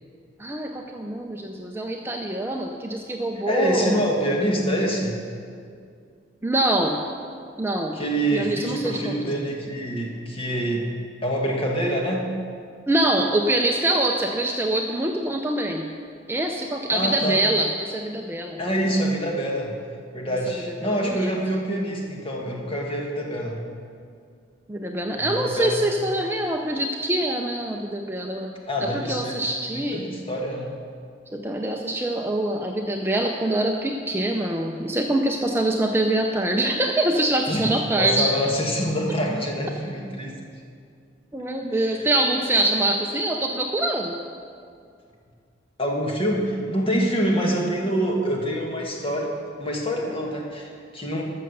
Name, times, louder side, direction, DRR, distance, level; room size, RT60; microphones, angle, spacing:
voice 1, 0.4-4.0 6.4-7.0 7.6-8.0 8.3-9.4 12.9-15.9 16.3-18.6 20.8-21.3 24.7-28.5 28.8-30.0 31.3-38.3 41.3-44.2, right 1 dB, 10° right, 2 dB, 0.5 m, -24 dB
voice 2, 3.5-5.2 7.9-10.9 11.2-12.2 16.9-17.4 18.6-19.7 20.1-23.6 25.3-26.0 28.7-29.4 29.7-30.7 37.5-37.6 38.0-40.4 41.8-42.1 45.8-49.3 49.6-51.2, equal, 30° left, -1 dB, 1.6 m, -26 dB
13.5 x 6.6 x 6.6 m, 2.3 s
head